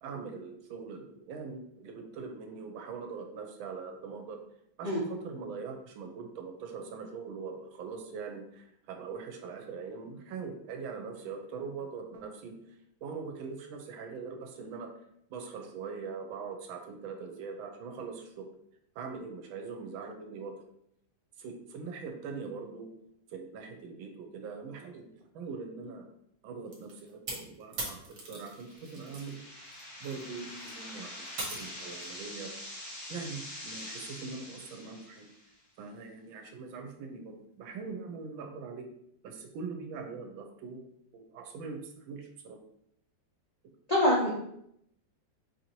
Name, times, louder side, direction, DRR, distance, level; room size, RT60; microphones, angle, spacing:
voice 1, 0.0-4.4 4.8-12.5 13.0-14.9 15.3-18.5 19.0-20.6 21.4-22.9 23.3-26.0 26.4-28.0 28.3-29.4 30.0-32.5 33.1-35.3 35.8-38.9 39.2-40.9 41.1-42.6, right 5 dB, 90° right, 4 dB, 1.4 m, -42 dB
sound 1, 26.7-29.3 29.7-32.2, right 2 dB, 60° right, 1.6 m, -41 dB
sound 2, 28.5-35.5, left 1 dB, 20° left, 0.6 m, -45 dB
voice 2, 43.9-44.3, left 1 dB, 80° left, -7 dB, 0.3 m, -24 dB
4.3 x 2.6 x 2.9 m, 0.75 s
omnidirectional pair, 2.1 m